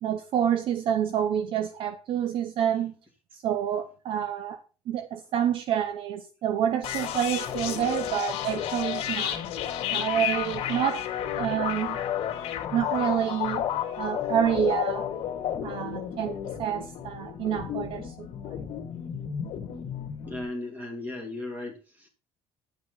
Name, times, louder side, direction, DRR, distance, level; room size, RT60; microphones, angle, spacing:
voice 1, 0.0-3.0 3.3-4.6 4.9-9.4 9.9-11.0 11.4-12.0 12.7-13.7 14.0-15.1 15.6-18.3, right 9 dB, 50° right, 0.8 m, -28 dB
sound 1, 6.8-20.4, left 10 dB, 55° left, 2.5 m, -32 dB
voice 2, 20.3-22.1, left 2 dB, 15° right, 2.9 m, -36 dB
10.0 x 8.8 x 3.9 m
cardioid pair, 175°, 12 cm